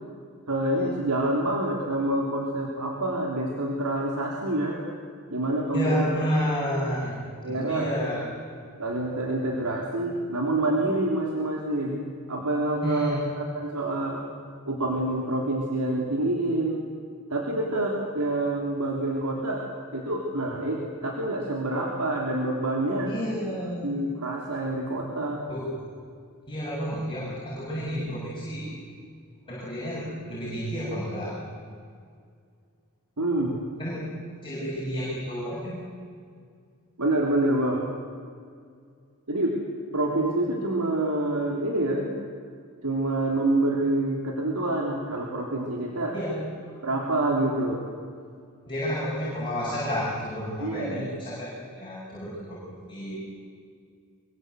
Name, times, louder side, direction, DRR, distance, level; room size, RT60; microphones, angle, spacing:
voice 1, 0.5-4.8 5.3-6.0 7.4-7.9 8.8-14.2 14.7-16.8 17.3-19.7 19.9-23.1 23.8-25.4 33.2-33.6 37.0-37.8 39.3-39.6 39.9-42.1 42.8-46.2 46.8-47.8 50.6-51.1, right 1 dB, 85° right, -1 dB, 3.4 m, -27 dB
voice 2, 5.7-7.2 7.5-8.2 12.8-13.2 23.1-24.0 25.5-25.7 26.5-28.7 29.5-31.4 33.8-34.1 34.4-35.9 46.1-46.8 48.7-53.2, equal, 20° left, -8 dB, 7.5 m, -31 dB
25.0 x 24.0 x 8.2 m, 2.1 s
head